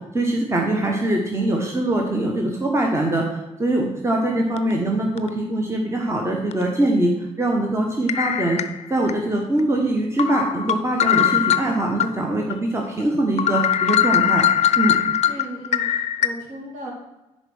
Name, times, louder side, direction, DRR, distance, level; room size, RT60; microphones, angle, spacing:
voice 1, 0.1-8.6 8.9-14.5 14.8-14.9, right 1 dB, 15° right, 0 dB, 1.3 m, -22 dB
sound 1, 4.6-4.7 5.2-5.3 6.5-6.6 8.1-9.1 9.6-9.7 10.2-12.1 12.5-12.6 13.0-13.1 13.4-16.3, left 10 dB, 45° left, 0.6 m, -21 dB
voice 2, 15.2-16.9, right 1 dB, 50° right, -2 dB, 2.6 m, -36 dB
10.5 x 4.3 x 6.2 m, 1.0 s
figure-of-eight pair, 40°, 16 cm